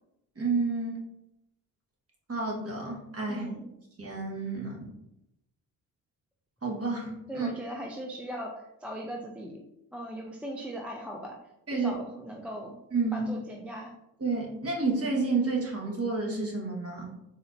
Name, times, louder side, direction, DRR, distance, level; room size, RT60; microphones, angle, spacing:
voice 1, 0.4-1.0 2.3-3.5 4.0-4.8 6.6-7.5 11.7-11.9 12.9-13.3 14.2-17.1, right 3 dB, 30° right, -2 dB, 1.4 m, -30 dB
voice 2, 3.3-3.8 7.3-9.6 9.9-11.4 11.7-12.8 13.1-13.9, equal, 5° right, 0 dB, 0.3 m, -39 dB
4.1 x 2.7 x 2.6 m, 0.84 s
hypercardioid pair, 50°, 48 cm